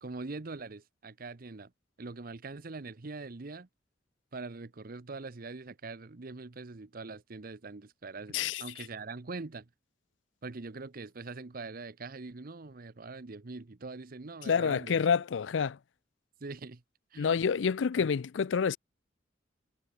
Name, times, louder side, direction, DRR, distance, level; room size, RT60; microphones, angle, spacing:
voice 1, 0.0-1.7 2.0-3.7 4.3-9.7 10.4-15.0 16.4-16.8 17.1-17.4 18.0-18.1, right 3 dB, 50° right, 0.8 m, -43 dB
voice 2, 14.4-15.8 17.2-18.8, left 6 dB, 90° left, 0.4 m, -28 dB
head